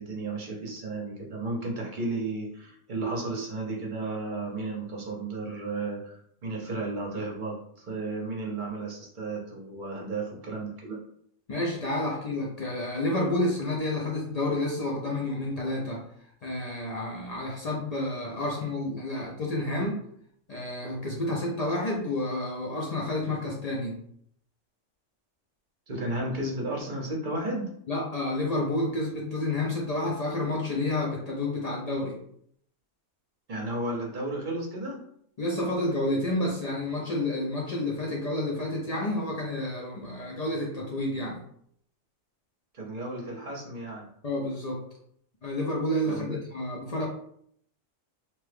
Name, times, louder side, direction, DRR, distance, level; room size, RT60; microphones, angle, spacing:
voice 1, 0.0-11.0 25.9-27.7 33.5-35.0 42.7-44.1 46.0-46.4, right 2 dB, 45° right, -1 dB, 0.8 m, -33 dB
voice 2, 11.5-16.0 16.4-20.0 20.5-24.0 27.9-32.2 35.4-41.4 44.2-44.8 45.4-47.1, left 1 dB, 75° left, -2 dB, 0.3 m, -30 dB
2.9 x 2.2 x 3.3 m, 0.67 s
omnidirectional pair, 1.3 m